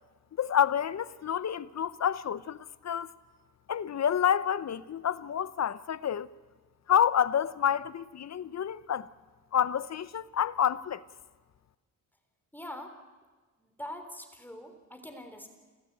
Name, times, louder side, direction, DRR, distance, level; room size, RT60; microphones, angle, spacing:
voice 1, 0.4-2.6 2.8-3.1 3.7-6.3 6.9-9.1 9.5-11.0, left 9 dB, 50° left, 0.7 m, -28 dB
voice 2, 12.5-12.9 13.6-15.5, left 1 dB, 5° left, 3.6 m, -43 dB
29.0 x 14.5 x 9.0 m
cardioid pair, 105°, 35 cm